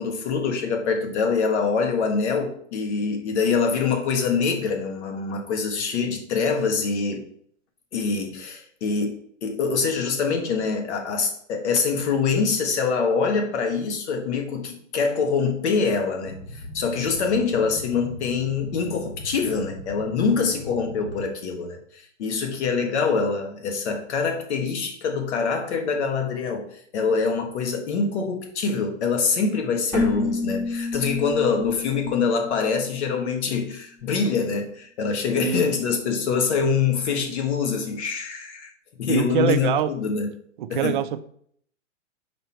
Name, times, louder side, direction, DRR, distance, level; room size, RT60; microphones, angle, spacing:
voice 1, 0.0-7.2 7.9-38.7 39.0-40.3 40.7-41.0, left 5 dB, 60° left, 4 dB, 1.5 m, -25 dB
Boat Water vehicle, 16.2-21.3, left 1 dB, 35° left, 0.8 m, -39 dB
Keyboard (musical), 29.9-33.6, left 3 dB, 5° left, 1.2 m, -30 dB
voice 2, 39.1-39.9 40.6-41.2, right 11 dB, 40° right, 10 dB, 0.4 m, -24 dB
5.1 x 4.5 x 4.6 m, 0.63 s
hypercardioid pair, 150°, 37 cm